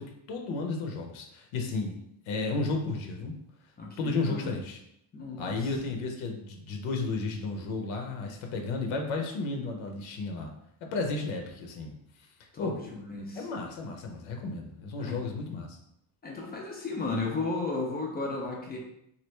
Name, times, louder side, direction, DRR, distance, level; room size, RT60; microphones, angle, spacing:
voice 1, 0.0-2.0 2.3-3.3 4.0-4.8 5.4-10.5 10.9-11.9 12.6-12.7 13.4-15.8, left 3 dB, 75° left, 3 dB, 0.7 m, -33 dB
voice 2, 3.8-4.6 5.1-5.7 10.9-11.0 12.5-13.5 15.0-15.2 16.2-18.8, left 3 dB, 20° left, -1 dB, 0.4 m, -34 dB
3.1 x 2.5 x 3.1 m, 0.76 s
cardioid pair, 150°, 48 cm